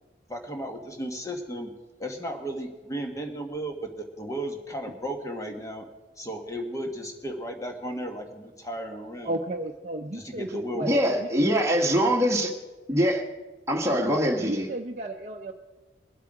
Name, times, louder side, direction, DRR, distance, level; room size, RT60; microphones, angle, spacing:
voice 1, 0.3-1.7 2.0-5.9 6.2-9.3 10.1-11.2, right 1 dB, 20° left, 4 dB, 1.4 m, -35 dB
voice 2, 9.2-11.5 13.9-15.5, right 2 dB, 40° right, 1 dB, 0.6 m, -33 dB
voice 3, 10.8-12.5 12.9-13.2 13.7-14.7, equal, 15° right, 0 dB, 1.4 m, -23 dB
22.5 x 8.2 x 4.9 m, 1.2 s
head